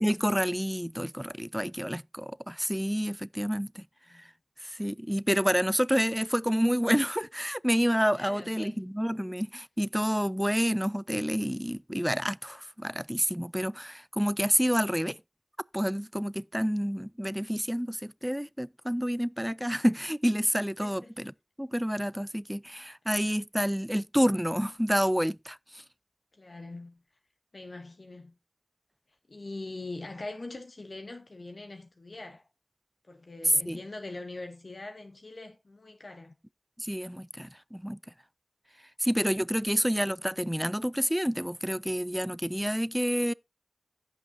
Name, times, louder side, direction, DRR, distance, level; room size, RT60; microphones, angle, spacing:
voice 1, 0.0-3.9 4.6-15.2 15.7-21.3 21.6-25.8 33.7-33.8 36.8-38.0 39.0-43.3, equal, 5° right, 0.4 m, -29 dB
voice 2, 8.1-8.8 20.8-21.1 26.4-27.0 27.5-28.4 29.3-32.5 33.1-36.3 39.5-39.6, left 2 dB, 70° left, 1.9 m, -42 dB
16.0 x 5.8 x 2.7 m
wide cardioid pair, 50°, 0 cm